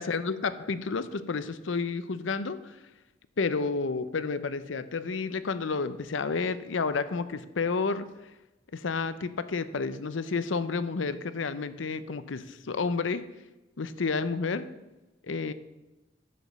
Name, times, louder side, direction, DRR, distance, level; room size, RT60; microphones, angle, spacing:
voice 1, 0.0-2.8 3.4-8.1 8.7-13.2 13.8-14.7 15.3-15.5, left 4 dB, 90° left, 13 dB, 0.7 m, -30 dB
11.0 x 5.1 x 6.7 m, 1.0 s
head